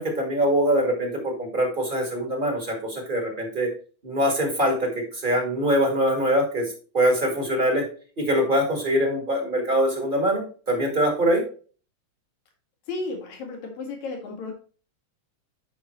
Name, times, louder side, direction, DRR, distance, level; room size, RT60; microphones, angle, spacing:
voice 1, 0.0-3.7 4.0-7.9 8.2-11.4, equal, 20° right, 1 dB, 1.6 m, -23 dB
voice 2, 12.9-14.5, left 3 dB, 75° left, 2 dB, 3.3 m, -33 dB
9.5 x 5.6 x 3.1 m, 0.39 s
omnidirectional pair, 3.3 m